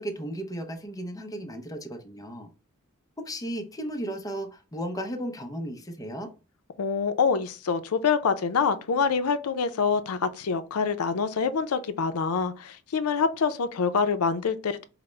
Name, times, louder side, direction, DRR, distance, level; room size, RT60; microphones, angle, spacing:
voice 1, 0.0-2.5 3.2-6.3, right 1 dB, 15° left, 0.6 m, -35 dB
voice 2, 6.8-14.8, left 5 dB, 80° left, 0.5 m, -26 dB
4.8 x 2.0 x 3.2 m
head